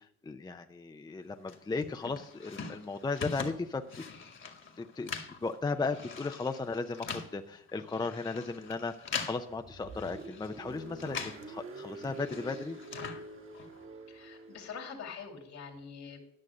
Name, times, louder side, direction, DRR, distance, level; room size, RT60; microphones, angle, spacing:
voice 1, 0.0-4.1 4.8-5.2 5.4-12.8, left 3 dB, 15° left, 7 dB, 0.5 m, -36 dB
sound 1, 1.5-11.5 11.8-13.8, left 5 dB, 40° left, 1.6 m, -43 dB
Car, 9.5-14.9, right 2 dB, 45° right, 1.5 m, -47 dB
voice 2, 14.1-16.2, left 6 dB, 65° left, 2 dB, 2.3 m, -44 dB
11.0 x 6.4 x 6.2 m, 0.79 s
cardioid pair, 90°, 30 cm